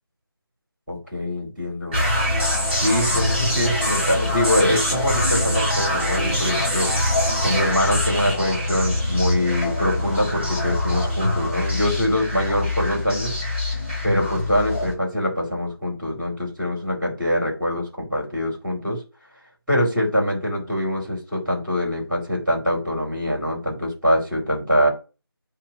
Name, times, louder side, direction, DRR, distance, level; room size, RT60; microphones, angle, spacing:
voice 1, 0.9-2.0 2.7-6.9 7.4-13.3 13.6-19.0 19.7-24.9, equal, ahead, -18 dB, 3.2 m, -24 dB
sound 1, 1.9-14.9, left 1 dB, 20° right, 4.5 m, -23 dB
8.8 x 3.0 x 5.7 m, 0.31 s
figure-of-eight pair, 180°, 13 cm